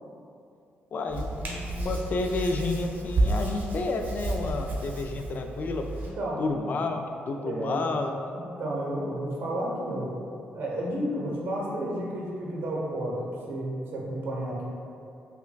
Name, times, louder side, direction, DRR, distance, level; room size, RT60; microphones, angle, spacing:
voice 1, 0.9-5.8 6.4-7.0 7.3-8.1, left 3 dB, 50° left, 4 dB, 0.3 m, -30 dB
Hands, 1.1-6.1, right 2 dB, 45° right, 0.8 m, -31 dB
voice 2, 6.2-6.5 7.4-10.1 10.5-14.6, right 1 dB, 75° right, -3 dB, 0.8 m, -32 dB
5.6 x 2.3 x 2.2 m, 2.6 s
cardioid pair, 95°, 4 cm